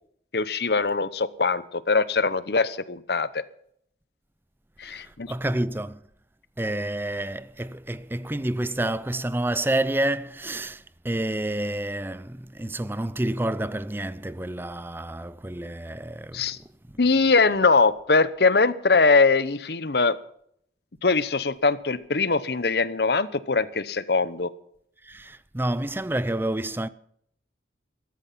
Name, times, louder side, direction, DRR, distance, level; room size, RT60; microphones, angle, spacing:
voice 1, 0.3-3.4 4.8-5.3 16.3-16.6 17.0-20.2 21.0-24.5, left 4 dB, 65° left, 0.9 m, -22 dB
voice 2, 4.8-6.0 6.6-16.5 25.0-26.9, right 1 dB, 10° right, 0.5 m, -29 dB
14.0 x 14.0 x 5.7 m
head